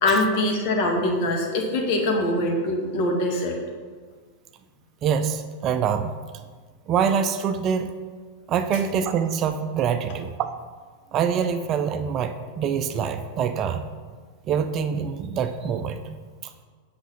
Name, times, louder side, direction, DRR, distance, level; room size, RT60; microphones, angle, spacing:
voice 1, 0.0-3.6, left 1 dB, 45° left, 1 dB, 1.9 m, -23 dB
voice 2, 5.0-6.2 6.9-7.9 8.5-10.6 11.1-13.9 14.5-16.0 16.4-16.5, right 7 dB, 35° right, 8 dB, 0.5 m, -25 dB
8.1 x 5.9 x 5.7 m, 1.5 s
figure-of-eight pair, 90°, 0 cm